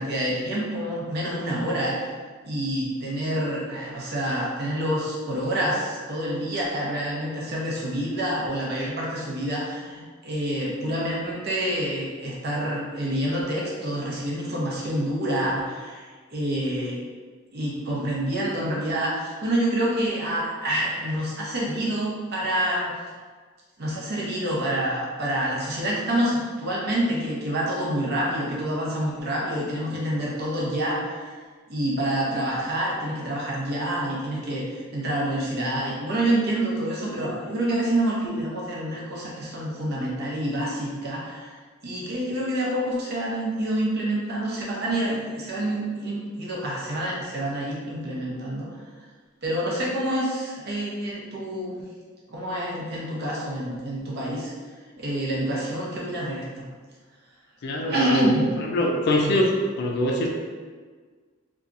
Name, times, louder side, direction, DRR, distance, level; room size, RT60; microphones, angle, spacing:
voice 1, 0.0-2.0 2.4-16.0 16.3-17.0 17.5-22.9 23.8-31.3 31.7-41.5 41.8-48.7 49.4-51.8 52.3-54.5 55.0-56.6 57.9-58.5 59.2-59.4, right 1 dB, 55° right, -4 dB, 0.7 m, -27 dB
voice 2, 57.6-60.3, left 1 dB, 55° left, 1 dB, 0.4 m, -24 dB
2.8 x 2.3 x 2.5 m, 1.5 s
head